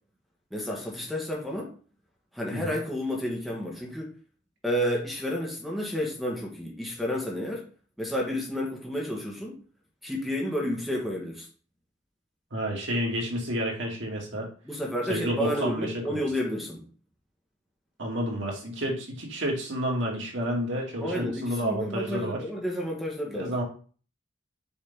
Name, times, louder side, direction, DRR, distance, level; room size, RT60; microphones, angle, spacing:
voice 1, 0.5-1.7 2.3-4.1 4.6-7.6 8.0-9.6 10.0-11.5 14.6-16.8 21.0-23.5, equal, ahead, 1.6 m, -31 dB
voice 2, 12.5-14.5 15.1-16.2 18.0-22.4 23.3-23.6, equal, 75° right, 2.4 m, -30 dB
7.0 x 5.2 x 3.7 m
head